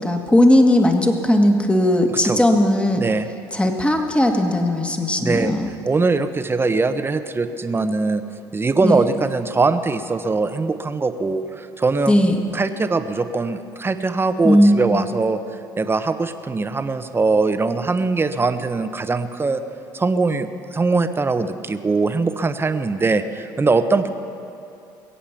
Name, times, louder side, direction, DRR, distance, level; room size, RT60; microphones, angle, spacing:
voice 1, 0.0-3.0 3.5-5.7 8.8-9.0 12.1-12.4 14.4-15.1, left 1 dB, 10° left, 4 dB, 1.8 m, -17 dB
voice 2, 3.0-3.3 5.2-5.5 5.8-8.2 8.5-12.2 12.5-15.4 15.8-19.6 19.9-24.1, right 3 dB, 25° right, 10 dB, 1.0 m, -21 dB
22.0 x 8.4 x 5.9 m, 2.7 s
hypercardioid pair, 65°, 10 cm